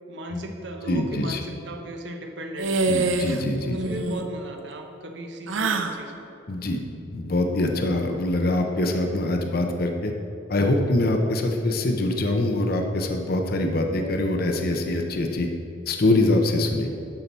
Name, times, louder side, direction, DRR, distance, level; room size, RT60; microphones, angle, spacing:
voice 1, 0.1-2.8 3.6-6.3, right 1 dB, 65° right, 4 dB, 0.9 m, -36 dB
voice 2, 0.9-1.4 2.9-4.0 6.5-6.8 7.1-10.1 10.5-15.5 15.9-16.9, left 2 dB, 50° left, 4 dB, 0.7 m, -24 dB
sound 1, 2.6-3.4 3.7-4.3 5.5-6.0, right 3 dB, 85° right, 0.6 m, -25 dB
12.0 x 5.8 x 4.1 m, 2.8 s
head